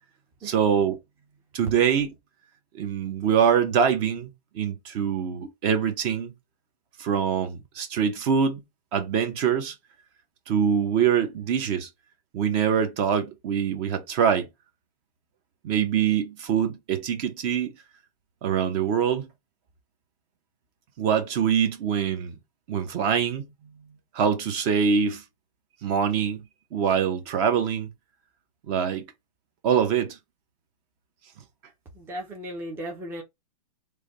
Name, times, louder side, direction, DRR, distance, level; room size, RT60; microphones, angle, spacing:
voice 1, 0.4-1.0 1.5-2.1 2.8-6.3 7.0-8.6 8.9-9.7 10.5-11.9 12.3-14.5 15.6-17.7 18.4-19.3 21.0-22.3 22.7-23.5 24.1-25.2 25.8-26.4 26.7-27.9 28.7-29.0 29.6-30.2, right 7 dB, 35° right, 0.8 m, -24 dB
voice 2, 32.0-33.2, equal, 10° right, 0.6 m, -36 dB
3.3 x 2.2 x 3.8 m
hypercardioid pair, 140°, 21 cm